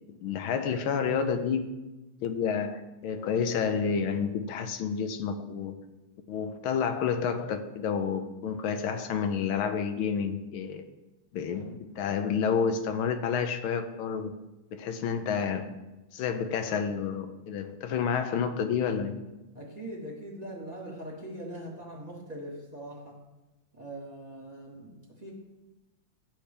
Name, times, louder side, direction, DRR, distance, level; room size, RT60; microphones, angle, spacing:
voice 1, 0.2-1.7 2.2-5.8 6.3-10.8 11.3-14.3 14.7-15.7 16.1-19.2, left 6 dB, 90° left, 7 dB, 1.6 m, -29 dB
voice 2, 19.5-23.2 23.7-24.9 25.2-25.3, right 1 dB, 20° right, -3 dB, 1.8 m, -41 dB
11.5 x 7.6 x 3.4 m, 1.1 s
omnidirectional pair, 2.2 m